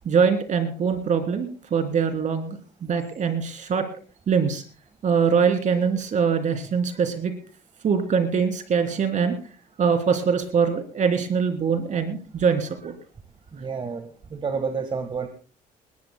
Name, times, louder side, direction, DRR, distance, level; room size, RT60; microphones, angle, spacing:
voice 1, 0.0-3.9 4.3-4.6 5.0-7.3 7.8-9.4 9.8-12.9, right 6 dB, 45° right, 7 dB, 3.0 m, -23 dB
voice 2, 13.5-15.3, right 5 dB, 30° right, 7 dB, 1.5 m, -30 dB
21.0 x 19.0 x 2.2 m, 0.38 s
cardioid pair, 110°, 17 cm